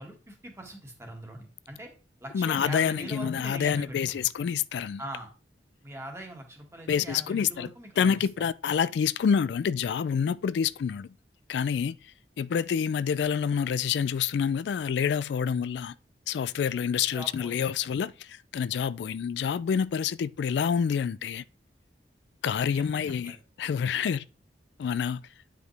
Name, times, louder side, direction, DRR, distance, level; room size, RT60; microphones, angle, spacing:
voice 1, 0.0-1.9 2.2-4.0 5.0-5.3 5.8-8.3 17.1-17.7 22.6-23.4, right 1 dB, 15° right, 1.6 m, -42 dB
voice 2, 2.3-5.0 6.9-7.7 8.0-11.1 11.5-12.0 12.4-15.9 16.3-21.4 22.4-24.3 24.8-25.2, left 7 dB, 75° left, 0.3 m, -27 dB
9.3 x 5.1 x 3.3 m
head